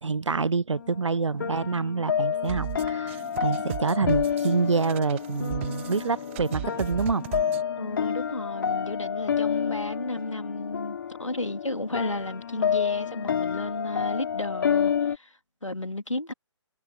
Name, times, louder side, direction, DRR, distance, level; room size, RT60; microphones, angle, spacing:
voice 1, 0.0-7.2, right 4 dB, 75° right, 0.6 m, -27 dB
sound 1, 0.7-15.2, left 8 dB, 45° left, 2.0 m, -29 dB
sound 2, 2.5-7.6, right 17 dB, 25° right, 1.0 m, -37 dB
voice 2, 7.8-16.3, left 2 dB, 85° left, 2.3 m, -33 dB
figure-of-eight pair, 140°, 16 cm